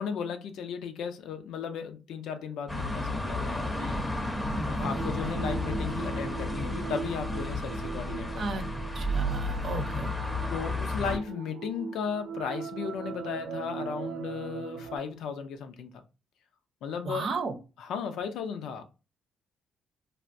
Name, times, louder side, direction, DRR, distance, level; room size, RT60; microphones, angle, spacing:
voice 1, 0.0-4.0 4.7-8.6 10.5-15.9 16.8-17.3 17.9-18.8, left 6 dB, 80° left, 0.5 m, -35 dB
sound 1, 2.7-11.2, left 1 dB, 15° left, 0.7 m, -32 dB
voice 2, 4.5-5.1 8.4-8.7 8.9-10.1 17.0-17.6, right 3 dB, 55° right, 0.7 m, -34 dB
sound 2, 4.8-15.0, right 7 dB, 80° right, 0.3 m, -40 dB
3.3 x 2.4 x 2.5 m
cardioid pair, 90°, 0 cm